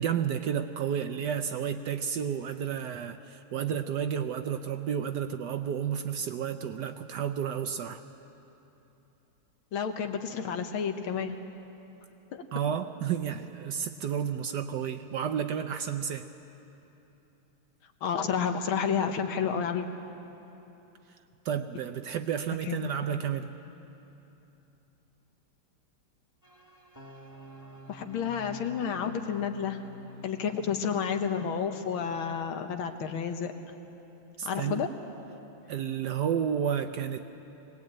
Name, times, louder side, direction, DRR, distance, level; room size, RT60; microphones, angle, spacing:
voice 1, 0.0-8.0 12.5-16.3 21.4-23.5 34.4-34.9 35.7-37.2, right 8 dB, 70° right, 8 dB, 1.1 m, -31 dB
voice 2, 9.7-11.4 12.3-12.4 18.0-19.9 22.7-22.9 27.9-29.8 30.2-33.5 34.4-34.9, left 7 dB, 80° left, 6 dB, 1.9 m, -30 dB
sound 1, 26.4-32.2, left 1 dB, 10° left, 2.2 m, -49 dB
21.5 x 18.0 x 8.8 m, 3.0 s
omnidirectional pair, 2.3 m